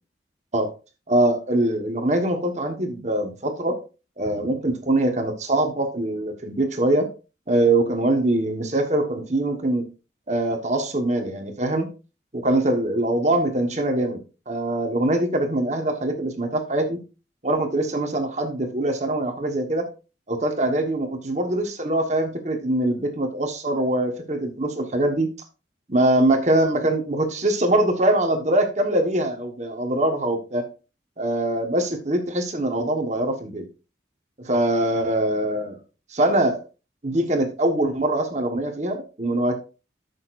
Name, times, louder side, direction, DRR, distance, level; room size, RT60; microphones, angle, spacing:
voice 1, 1.1-3.8 4.2-7.1 7.5-9.8 10.3-11.9 12.3-14.2 14.5-17.0 17.4-19.9 20.3-25.3 25.9-30.6 31.2-33.7 34.4-35.7 36.1-36.6 37.0-39.6, right 1 dB, 40° right, 5 dB, 1.4 m, -23 dB
13.5 x 6.6 x 2.5 m, 0.31 s
head